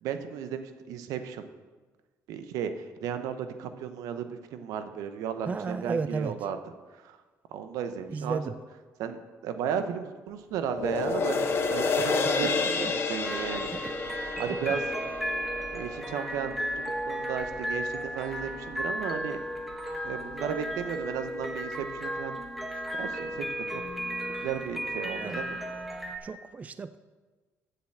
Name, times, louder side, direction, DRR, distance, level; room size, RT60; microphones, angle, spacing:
voice 1, 0.0-1.5 2.3-6.6 7.0-7.2 7.5-8.4 9.0-13.9 14.4-14.8 15.7-19.4 20.0-22.4 22.7-23.8 24.4-25.6, right 8 dB, 85° right, 9 dB, 0.8 m, -34 dB
voice 2, 5.5-6.3 8.1-8.5 12.0-12.1 12.4-12.5 13.7-13.9 14.5-14.6 25.0-25.4 26.2-27.0, right 4 dB, 25° right, 13 dB, 0.3 m, -33 dB
sound 1, 10.7-17.3 17.7-17.8, left 4 dB, 45° left, 1.0 m, -30 dB
sound 2, 13.2-26.2, equal, ahead, 1.4 m, -34 dB
7.2 x 7.0 x 7.7 m, 1.3 s
cardioid pair, 100°, 6 cm